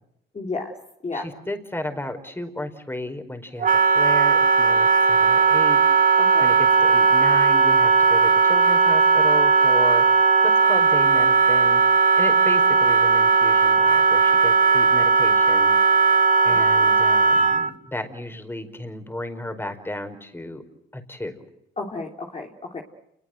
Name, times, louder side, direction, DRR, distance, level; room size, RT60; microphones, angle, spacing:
voice 1, 0.3-0.7 1.0-1.3 6.2-6.5 16.5-16.9 21.8-22.8, left 3 dB, 35° left, 1 dB, 3.5 m, -32 dB
voice 2, 1.1-5.8 6.1-10.0 10.4-15.8 16.4-20.6 20.9-21.4, left 1 dB, 10° left, 7 dB, 5.0 m, -34 dB
Wind instrument woodwind instrument, 3.6-17.7, right 4 dB, 45° right, 1.7 m, -17 dB
29.5 x 21.5 x 8.0 m, 0.82 s
cardioid pair, 90°, 20 cm